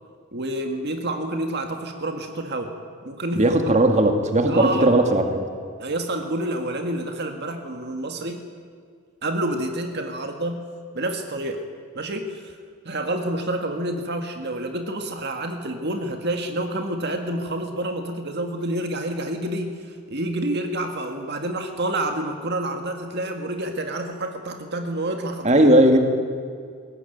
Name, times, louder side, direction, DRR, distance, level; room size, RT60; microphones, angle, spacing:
voice 1, 0.3-2.7 3.0-3.5 4.5-4.9 5.8-8.4 9.2-10.6 10.9-11.6 11.9-12.5 12.9-25.5, right 1 dB, 50° right, 4 dB, 1.9 m, -28 dB
voice 2, 3.3-5.5 25.4-26.0, right 1 dB, 30° right, 5 dB, 2.1 m, -17 dB
21.5 x 18.0 x 9.4 m, 2.1 s
head